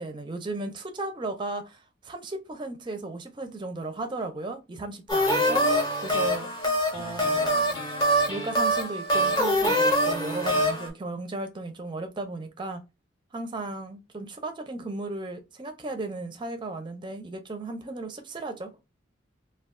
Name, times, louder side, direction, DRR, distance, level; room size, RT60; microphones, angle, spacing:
voice 1, 0.0-6.5 6.9-7.6 8.3-12.8 13.3-18.7, right 2 dB, 25° right, 0.5 m, -35 dB
sound 1, 5.1-10.9, equal, 20° left, 0.7 m, -24 dB
2.3 x 2.3 x 3.5 m
head